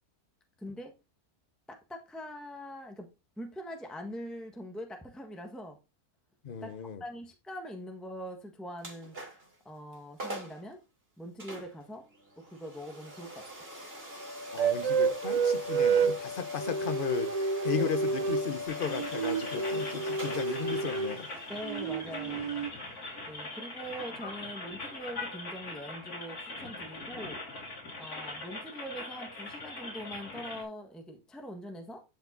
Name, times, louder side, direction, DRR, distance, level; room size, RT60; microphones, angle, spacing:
voice 1, 0.6-0.9 1.7-3.1 3.4-5.8 6.6-9.2 9.6-10.8 11.2-12.1 12.4-13.5 17.7-17.9 21.5-22.6 23.3-27.4 28.0-32.0, equal, ahead, 1.5 m, -43 dB
voice 2, 6.4-7.0 14.5-21.3, left 7 dB, 40° left, 0.9 m, -36 dB
sound 1, 8.8-9.6 9.9-10.0 10.2-10.6 11.4-24.1, left 2 dB, 40° right, 3.3 m, -42 dB
sound 2, 14.6-16.2 16.6-18.5 18.9-21.2 21.6-22.7, right 5 dB, 70° right, 0.3 m, -29 dB
sound 3, 18.7-30.6, left 2 dB, 75° left, 3.9 m, -41 dB
11.5 x 5.9 x 4.0 m
omnidirectional pair, 1.6 m